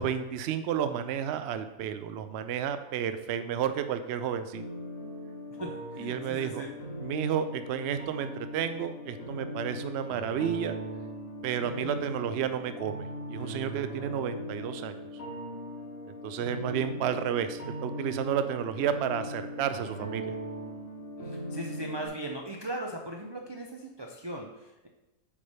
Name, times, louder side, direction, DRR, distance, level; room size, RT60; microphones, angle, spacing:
voice 1, 0.0-4.6 6.0-6.7 7.0-10.8 11.4-15.0 16.2-20.3, right 9 dB, 65° right, 10 dB, 0.7 m, -31 dB
sound 1, 4.5-22.1, equal, 70° left, 1.8 m, -39 dB
voice 2, 5.6-6.7 11.6-12.0 21.2-24.9, right 1 dB, 35° right, 0 dB, 0.4 m, -39 dB
8.6 x 3.3 x 5.5 m, 0.95 s
omnidirectional pair, 1.4 m